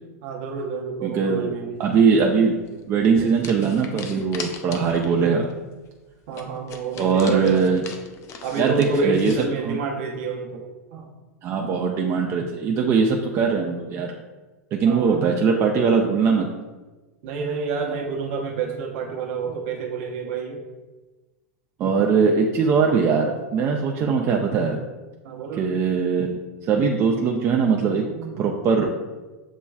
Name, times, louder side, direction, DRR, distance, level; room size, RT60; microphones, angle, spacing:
voice 1, 0.2-1.8 6.3-7.8 8.4-10.6 10.9-11.1 14.8-15.3 17.2-20.6 25.2-25.7 27.8-28.4, right 4 dB, 55° right, 1 dB, 0.9 m, -29 dB
voice 2, 1.0-1.5 1.8-2.6 2.9-5.5 7.0-7.8 8.6-9.3 9.6-9.8 11.4-14.1 14.7-16.5 21.8-24.8 25.6-28.0 28.4-28.9, right 5 dB, 35° right, 1 dB, 0.5 m, -21 dB
sound 1, 2.6-2.8 3.4-5.2 5.5-5.6 5.9-6.0 6.3-9.5, left 6 dB, 35° left, 0.6 m, -40 dB
7.2 x 3.0 x 2.3 m, 1.2 s
figure-of-eight pair, 90°, 8 cm